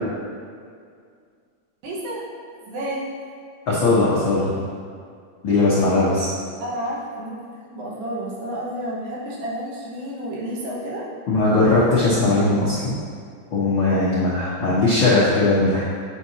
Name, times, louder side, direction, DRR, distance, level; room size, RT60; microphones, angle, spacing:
voice 1, 1.8-3.0 6.6-11.1, right 1 dB, 85° right, -6 dB, 3.2 m, -31 dB
voice 2, 3.7-4.5 5.4-6.3 11.3-12.9 13.5-15.8, left 2 dB, 75° left, -9 dB, 1.1 m, -19 dB
8.3 x 5.9 x 2.8 m, 2.1 s
omnidirectional pair, 4.0 m